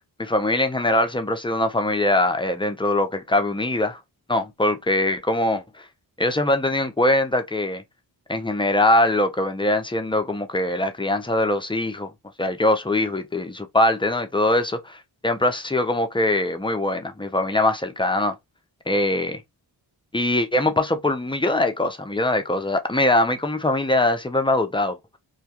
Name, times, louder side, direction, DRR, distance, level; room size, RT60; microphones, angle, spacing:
voice 1, 0.2-4.0 4.3-5.8 6.2-7.8 8.3-12.1 12.4-18.3 18.9-19.4 20.1-25.0, left 1 dB, 10° left, 0.5 m, -22 dB
2.2 x 2.2 x 2.8 m
cardioid pair, 45°, 45 cm